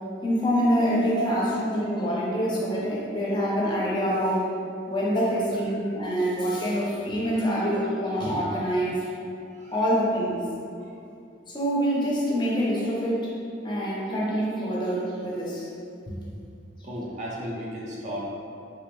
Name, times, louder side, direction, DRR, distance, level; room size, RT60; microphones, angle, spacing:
voice 1, 0.2-4.5 4.9-9.0 9.7-10.4 11.5-13.3 13.6-15.7 16.1-16.2, equal, 25° left, -5 dB, 0.5 m, -25 dB
voice 2, 16.8-18.3, right 1 dB, 40° right, -5 dB, 0.5 m, -34 dB
3.5 x 2.0 x 3.0 m, 2.5 s
head